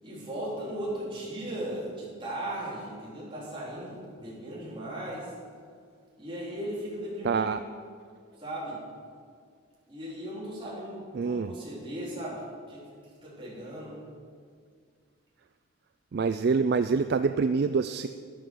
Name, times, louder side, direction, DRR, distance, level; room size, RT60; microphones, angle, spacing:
voice 1, 0.0-5.3 6.2-7.4 8.4-8.8 9.9-12.4 12.7-12.8 13.2-14.0, right 1 dB, 25° right, -7 dB, 4.0 m, -37 dB
voice 2, 7.2-7.6 11.1-11.5 16.1-18.1, right 5 dB, 50° right, 11 dB, 0.3 m, -26 dB
12.0 x 11.5 x 6.3 m, 2.1 s
head